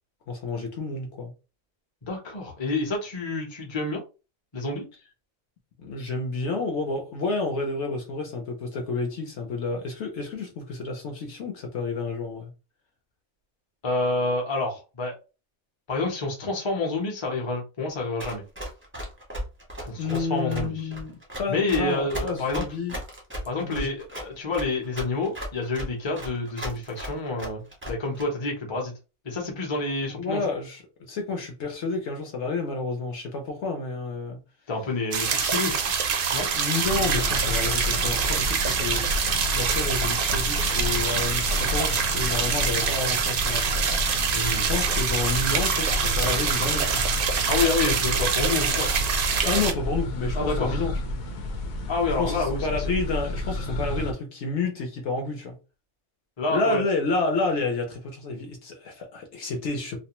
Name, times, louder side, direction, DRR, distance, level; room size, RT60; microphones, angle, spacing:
voice 1, 0.3-1.3 5.8-12.5 20.0-23.0 23.6-23.9 30.2-30.8 31.1-34.4 36.5-39.0 39.5-43.8 44.5-47.0 49.4-51.1 52.2-55.6 56.5-60.0, left 3 dB, 65° left, 0.9 m, -30 dB
voice 2, 2.0-4.0 4.5-4.9 13.8-15.1 15.9-18.4 19.8-20.9 21.5-22.6 23.5-28.9 29.2-30.4 34.7-35.8 36.3-36.5 44.3-44.7 47.5-48.9 50.3-50.8 51.9-52.8 56.4-56.8, left 3 dB, 30° left, 0.6 m, -28 dB
Run, 18.2-28.2, equal, 15° right, 0.5 m, -35 dB
sound 1, 35.1-49.7, right 6 dB, 65° right, 0.5 m, -25 dB
sound 2, 36.8-54.1, left 1 dB, 90° left, 1.0 m, -31 dB
2.5 x 2.1 x 2.9 m
omnidirectional pair, 1.4 m